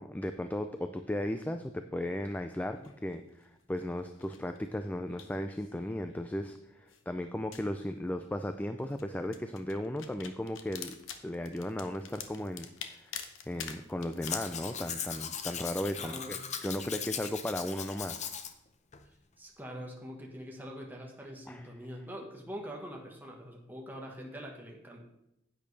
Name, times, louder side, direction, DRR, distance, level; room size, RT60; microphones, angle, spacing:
voice 1, 0.0-11.0 11.2-13.1 13.5-18.3 21.5-21.7, left 1 dB, 10° left, 8 dB, 0.4 m, -36 dB
sound 1, 2.7-15.5, left 7 dB, 70° left, 0.9 m, -49 dB
Domestic sounds home sounds, 14.2-18.5 18.9-19.0, left 7 dB, 35° left, 0.7 m, -39 dB
voice 2, 16.0-16.4 19.4-25.0, equal, 10° right, -1 dB, 1.3 m, -44 dB
10.5 x 8.9 x 3.3 m, 0.82 s
head